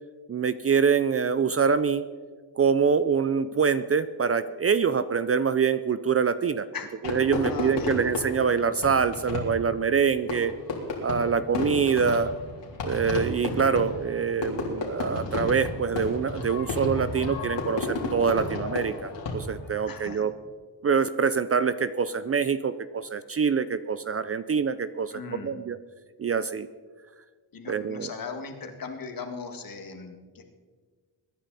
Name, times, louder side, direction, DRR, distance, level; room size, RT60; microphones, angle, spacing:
voice 1, 0.3-2.0 2.6-6.7 7.0-10.5 11.0-12.3 12.8-20.3 20.8-25.8 26.2-26.7 27.7-28.1, right 6 dB, 35° right, 13 dB, 0.5 m, -25 dB
Fireworks, 7.0-19.7, left 3 dB, 70° left, 3.4 m, -32 dB
voice 2, 7.3-8.0 19.9-20.3 25.1-25.5 27.5-30.4, left 5 dB, 50° left, 5 dB, 2.0 m, -38 dB
23.0 x 10.0 x 4.1 m, 1.5 s
cardioid pair, 105°, 44 cm